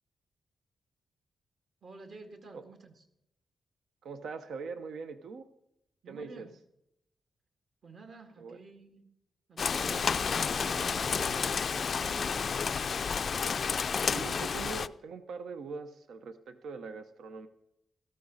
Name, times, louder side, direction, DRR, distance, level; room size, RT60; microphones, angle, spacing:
voice 1, 1.8-3.0 6.0-6.5 7.8-9.1 9.5-12.4, right 3 dB, 50° right, 6 dB, 2.0 m, -50 dB
voice 2, 4.0-5.5 6.1-6.5 8.4-8.6 14.0-17.5, right 5 dB, 80° right, 10 dB, 0.9 m, -42 dB
Rain, 9.6-14.9, left 6 dB, 45° left, 0.3 m, -30 dB
14.0 x 13.0 x 4.1 m, 0.81 s
wide cardioid pair, 140°, 0 cm